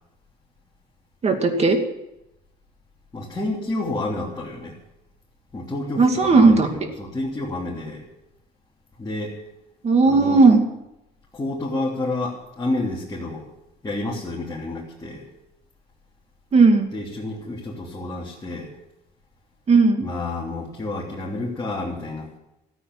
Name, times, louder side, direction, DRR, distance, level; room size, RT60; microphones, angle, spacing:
voice 1, 1.2-1.8 6.0-6.7 9.8-10.6 16.5-16.9 19.7-20.0, right 3 dB, 40° right, 5 dB, 2.4 m, -15 dB
voice 2, 3.1-4.8 5.5-8.0 9.0-9.3 10.1-10.4 11.3-13.5 13.8-15.2 16.9-18.7 20.0-22.4, left 2 dB, 20° left, -6 dB, 3.3 m, -29 dB
14.0 x 9.1 x 9.0 m, 0.91 s
cardioid pair, 110°, 17 cm